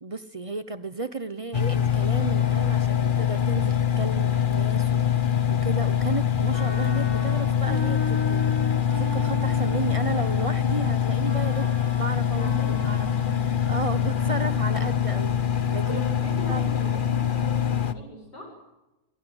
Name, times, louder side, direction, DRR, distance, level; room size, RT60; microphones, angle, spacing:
voice 1, 0.0-12.5 12.8-15.3 15.7-16.0 16.5-16.7, right 3 dB, 35° right, 13 dB, 0.5 m, -34 dB
Engine, 1.5-17.9, left 9 dB, 40° left, 0.8 m, -24 dB
Wind instrument woodwind instrument, 6.5-15.1, left 1 dB, 15° left, 3.9 m, -38 dB
voice 2, 12.3-12.8 15.8-18.6, equal, 65° left, -2 dB, 8.6 m, -38 dB
26.0 x 19.0 x 8.0 m, 1.0 s
omnidirectional pair, 2.0 m